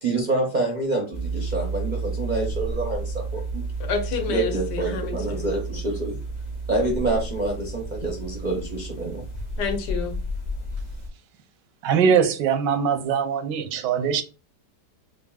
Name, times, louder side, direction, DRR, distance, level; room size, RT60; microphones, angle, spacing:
voice 1, 0.0-3.6 4.3-6.2 6.7-9.2, right 2 dB, 50° right, 0.5 m, -27 dB
sound 1, 1.1-11.1, right 2 dB, 35° left, 0.7 m, -31 dB
voice 2, 3.8-5.6 9.6-10.2, left 5 dB, 75° left, 1.3 m, -29 dB
voice 3, 11.8-14.2, right 7 dB, 85° right, 1.2 m, -22 dB
5.2 x 2.6 x 2.3 m
omnidirectional pair, 1.8 m